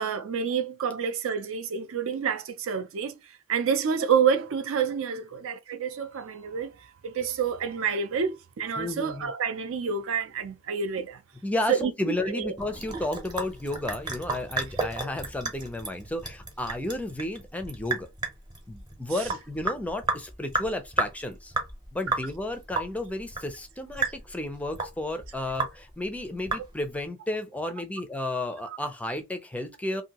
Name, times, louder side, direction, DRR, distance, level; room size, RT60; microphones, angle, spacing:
voice 1, 0.0-3.1 3.5-6.7 7.0-11.2 11.7-12.5 28.7-28.8, right 6 dB, 65° right, 0.5 m, -28 dB
voice 2, 8.8-9.3 11.4-18.1 18.7-21.5 21.9-30.0, left 1 dB, 5° left, 0.4 m, -32 dB
Sink (filling or washing) / Drip, 12.6-27.0, right 3 dB, 20° right, 0.8 m, -33 dB
2.7 x 2.6 x 2.8 m
head